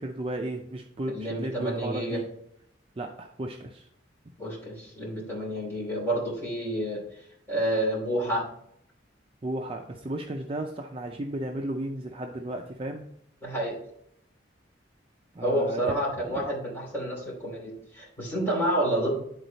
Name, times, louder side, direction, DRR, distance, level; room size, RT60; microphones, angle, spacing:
voice 1, 0.0-2.2 3.0-3.9 9.4-13.1 15.3-16.0 16.3-16.4, right 1 dB, 30° right, 3 dB, 0.5 m, -34 dB
voice 2, 1.1-2.2 4.4-7.0 7.5-8.5 13.4-13.7 15.4-19.1, right 1 dB, 15° left, -4 dB, 2.8 m, -29 dB
9.7 x 4.1 x 4.0 m, 0.72 s
head